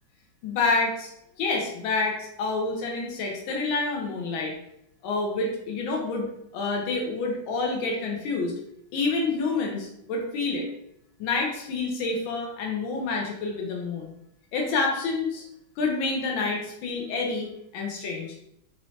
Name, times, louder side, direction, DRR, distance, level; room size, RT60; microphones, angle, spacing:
voice 1, 0.4-1.1 1.4-4.5 5.0-8.5 8.9-10.7 11.2-14.1 14.5-15.4 15.8-18.3, left 3 dB, 80° left, 0 dB, 1.5 m, -28 dB
4.3 x 3.0 x 2.7 m, 0.76 s
omnidirectional pair, 2.1 m